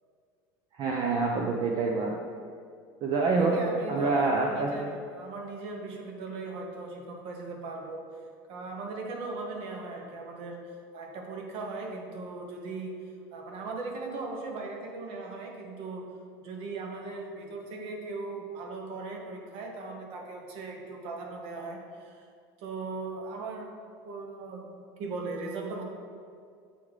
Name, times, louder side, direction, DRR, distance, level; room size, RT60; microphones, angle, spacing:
voice 1, 0.7-2.1 3.0-3.6 3.9-4.9, right 3 dB, 45° right, 0 dB, 0.6 m, -26 dB
voice 2, 3.3-8.0 8.5-10.6 10.9-12.9 13.3-16.0 16.4-22.2 22.6-25.8, right 3 dB, 60° right, 1 dB, 1.0 m, -38 dB
8.1 x 3.6 x 3.2 m, 2.2 s
supercardioid pair, 115°, 11 cm